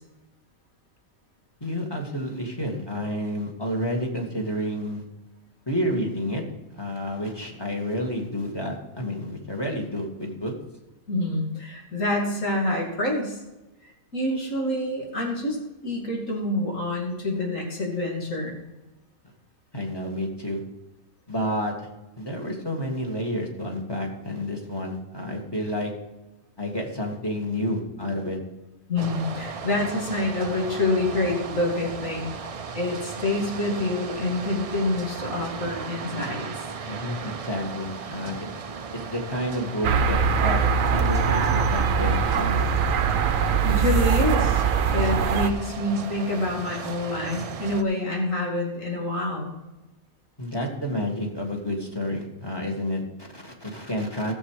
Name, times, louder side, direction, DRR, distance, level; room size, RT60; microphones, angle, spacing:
voice 1, 1.6-5.0 5.7-6.4 6.7-10.5 19.7-20.6 21.3-21.9 22.2-25.9 26.6-28.4 36.9-38.5 38.9-40.6 40.9-42.6 50.4-54.3, equal, 20° left, 1 dB, 1.9 m, -30 dB
voice 2, 11.1-13.4 14.1-18.6 28.9-32.3 32.7-36.4 43.6-44.6 44.9-49.5, left 2 dB, 75° left, -1 dB, 3.0 m, -27 dB
sound 1, 29.0-47.8, right 5 dB, 45° right, 0.4 m, -36 dB
sound 2, 39.8-45.5, right 6 dB, 90° right, 1.2 m, -22 dB
14.0 x 7.4 x 4.8 m, 1.0 s
omnidirectional pair, 1.4 m